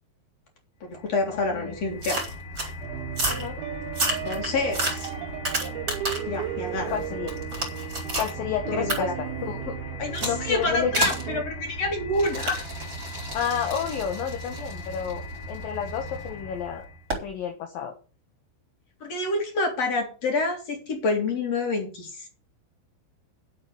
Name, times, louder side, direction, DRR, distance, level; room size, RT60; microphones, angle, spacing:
voice 1, 0.8-2.2 4.2-5.1 6.3-7.0 8.7-9.1 10.0-12.6 19.0-22.3, left 2 dB, 35° left, 2 dB, 4.1 m, -27 dB
sound 1, 0.9-17.1, equal, 85° left, 1.3 m, -39 dB
sound 2, 2.0-2.7 3.1-3.5 3.9-6.4 6.8-8.3 8.9-9.0 10.1-10.4 10.9-11.3 12.1-16.1 17.1-17.3, right 2 dB, 20° right, 4.0 m, -31 dB
sound 3, 2.8-11.4, right 12 dB, 75° right, 2.4 m, -36 dB
voice 2, 6.9-7.3 8.2-9.8 10.2-11.1 13.3-15.2 15.5-17.9, left 8 dB, 65° left, 4 dB, 2.6 m, -30 dB
10.0 x 8.0 x 7.0 m, 0.36 s
omnidirectional pair, 5.4 m